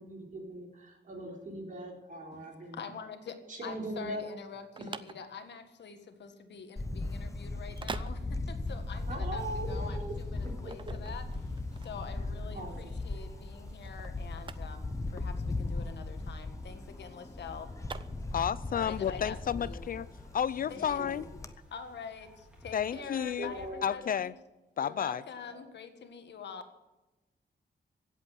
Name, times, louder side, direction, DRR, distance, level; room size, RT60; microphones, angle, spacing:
voice 1, 0.0-2.8 3.5-4.2 4.8-4.9 9.1-10.9 12.5-12.7 20.7-21.2 22.9-23.1 23.4-23.9 24.8-25.2 25.5-25.6, right 1 dB, 50° right, 1 dB, 4.0 m, -41 dB
voice 2, 2.3-17.7 18.7-19.8 20.7-21.0 21.3-21.4 21.7-22.3 22.6-24.3 24.8-26.6, left 6 dB, 80° left, 8 dB, 1.7 m, -45 dB
sound 1, 4.4-18.7, right 5 dB, 30° right, 0.6 m, -47 dB
Camera, 6.8-21.5, left 2 dB, 15° left, 0.7 m, -38 dB
sound 2, 8.7-23.7, equal, 5° right, 3.7 m, -57 dB
voice 3, 18.3-20.1 20.3-21.2 22.7-23.5 23.8-24.3 24.8-25.2, left 8 dB, 55° left, 18 dB, 0.4 m, -31 dB
16.5 x 8.3 x 7.8 m, 1.1 s
wide cardioid pair, 175°, 18 cm